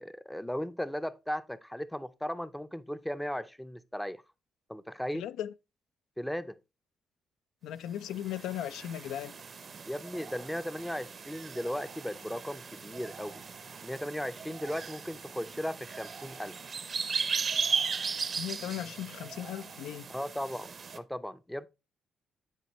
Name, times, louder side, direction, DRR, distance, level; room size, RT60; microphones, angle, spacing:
voice 1, 0.0-4.2 4.7-5.3 6.2-6.6 9.8-13.5 13.8-16.5 20.1-21.7, equal, 5° left, 0.4 m, -36 dB
voice 2, 5.1-5.5 7.6-9.3 18.4-20.1, left 11 dB, 85° left, 0.3 m, -37 dB
sound 1, 8.0-21.0, right 5 dB, 45° right, 0.6 m, -37 dB
9.4 x 4.3 x 3.1 m
cardioid pair, 90°, 0 cm